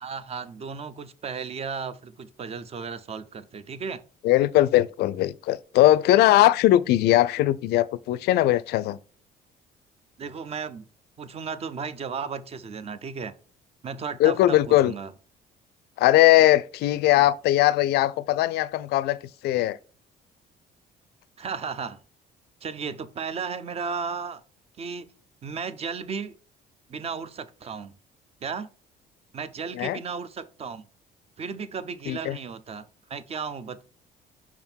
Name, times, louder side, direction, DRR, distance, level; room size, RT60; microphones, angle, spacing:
voice 1, 0.0-4.0 10.2-10.9 11.2-13.3 13.8-15.1 21.4-22.0 22.6-24.4 24.8-25.1 25.4-26.3 26.9-27.9 28.4-28.7 29.3-30.9 31.4-33.8, right 5 dB, 35° right, 0.6 m, -34 dB
voice 2, 4.2-9.0 14.2-14.9 16.0-19.8 29.8-30.0 32.1-32.4, left 14 dB, 75° left, 0.4 m, -20 dB
5.9 x 3.7 x 4.4 m
cardioid pair, 110°, 17 cm